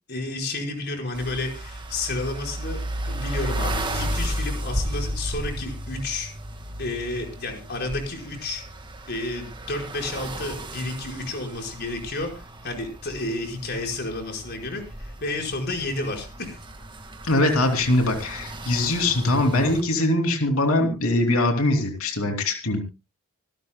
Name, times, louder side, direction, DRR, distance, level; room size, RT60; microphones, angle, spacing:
voice 1, 0.1-6.3 6.8-8.6 9.1-16.6, left 2 dB, 50° left, 2 dB, 4.9 m, -31 dB
sound 1, 1.1-19.8, right 1 dB, 25° right, 1.7 m, -34 dB
voice 2, 17.2-22.8, left 2 dB, 90° left, 4 dB, 2.9 m, -22 dB
26.0 x 12.0 x 2.2 m, 0.29 s
head